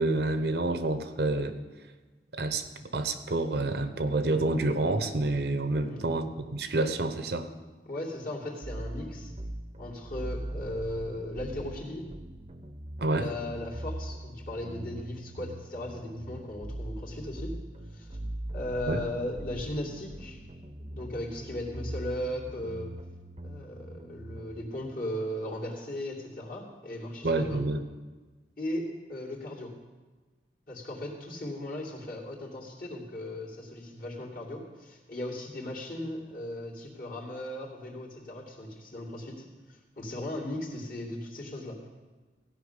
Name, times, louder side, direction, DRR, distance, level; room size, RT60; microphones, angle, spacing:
voice 1, 0.0-1.5 2.3-2.6 2.9-7.5 13.0-13.3 18.9-19.0 27.2-27.8, right 2 dB, 65° right, 9 dB, 0.9 m, -28 dB
voice 2, 7.8-9.3 9.8-12.1 13.2-17.6 17.9-18.2 18.5-20.4 20.8-23.0 23.4-27.7 28.6-29.7 30.7-41.8, left 1 dB, 50° left, -4 dB, 2.7 m, -37 dB
sound 1, 8.6-24.6, right 1 dB, 35° right, 0.8 m, -41 dB
16.0 x 5.7 x 8.2 m, 1.3 s
head